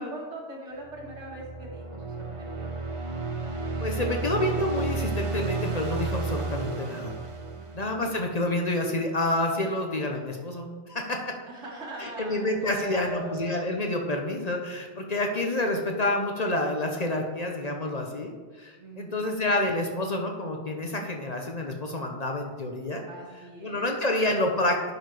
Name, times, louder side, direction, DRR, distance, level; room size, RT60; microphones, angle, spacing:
voice 1, 0.0-2.7 7.5-8.1 11.5-13.7 18.8-19.3 23.1-23.9, right 1 dB, 80° right, -3 dB, 2.3 m, -41 dB
sound 1, 0.9-8.3, right 3 dB, 30° right, 0.8 m, -32 dB
voice 2, 3.8-7.1 7.7-11.3 12.0-23.0 23.6-24.8, left 1 dB, 40° left, 2 dB, 0.8 m, -28 dB
10.5 x 4.6 x 4.8 m, 1.4 s
omnidirectional pair, 1.2 m